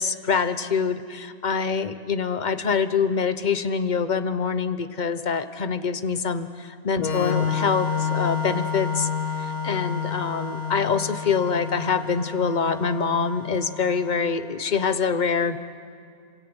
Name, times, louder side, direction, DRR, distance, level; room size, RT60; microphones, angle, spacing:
voice 1, 0.0-9.1 9.4-15.6, left 5 dB, 35° left, 10 dB, 0.9 m, -25 dB
Organ, 7.0-14.5, left 6 dB, 70° left, 2.2 m, -29 dB
27.5 x 26.0 x 8.0 m, 2.2 s
omnidirectional pair, 1.6 m